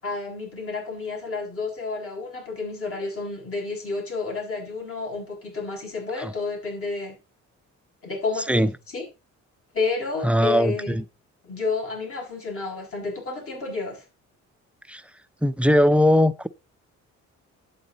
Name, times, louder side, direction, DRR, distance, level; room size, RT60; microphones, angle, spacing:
voice 1, 0.0-7.2 8.0-8.7 8.9-9.0 9.7-11.0 11.4-14.0, left 4 dB, 45° left, 7.6 m, -30 dB
voice 2, 10.2-11.0 14.9-15.0 15.4-16.5, equal, 5° right, 0.6 m, -20 dB
11.0 x 8.9 x 4.1 m
cardioid pair, 90°, 30 cm